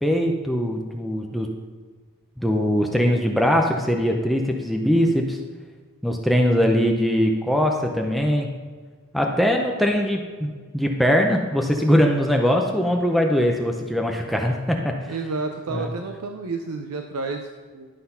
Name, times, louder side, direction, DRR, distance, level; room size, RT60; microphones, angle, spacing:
voice 1, 0.0-1.5 2.4-5.4 6.0-8.5 9.1-15.1 15.7-15.9, equal, ahead, 2 dB, 0.6 m, -21 dB
voice 2, 15.1-17.9, right 3 dB, 80° right, 5 dB, 0.6 m, -30 dB
11.5 x 4.1 x 5.5 m, 1.5 s
head